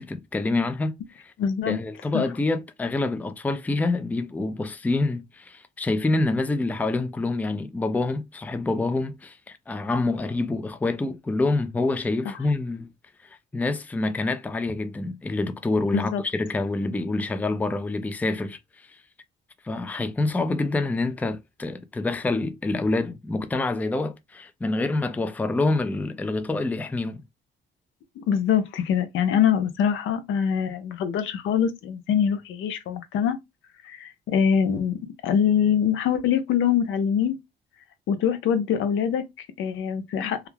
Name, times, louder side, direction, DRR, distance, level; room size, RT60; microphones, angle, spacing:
voice 1, 0.0-1.3 1.7-12.9 13.2-19.0 19.6-27.2, left 2 dB, 10° left, 0.3 m, -27 dB
voice 2, 1.4-1.8 2.1-2.2 15.9-16.2 28.2-33.4 33.8-37.4 38.1-40.5, left 8 dB, 80° left, 0.5 m, -24 dB
2.3 x 2.1 x 3.1 m
cardioid pair, 90°, 20 cm